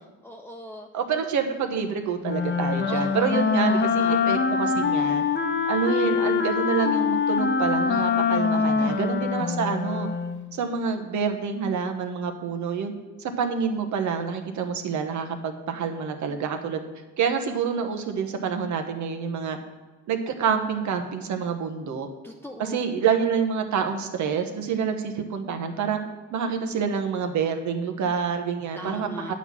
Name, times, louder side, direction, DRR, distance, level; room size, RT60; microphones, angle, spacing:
voice 1, 0.2-0.9 2.9-4.2 8.6-9.2 22.2-22.8 28.8-29.3, left 1 dB, 5° left, 2 dB, 0.6 m, -40 dB
voice 2, 0.9-5.2 5.7-10.1 10.5-12.9 13.2-16.8 17.2-19.6 20.1-22.1 22.6-26.0 26.3-29.3, right 6 dB, 70° right, 6 dB, 1.1 m, -27 dB
Wind instrument woodwind instrument, 2.2-10.4, left 5 dB, 35° left, 0.8 m, -24 dB
8.9 x 4.2 x 7.3 m, 1.2 s
cardioid pair, 90°, 30 cm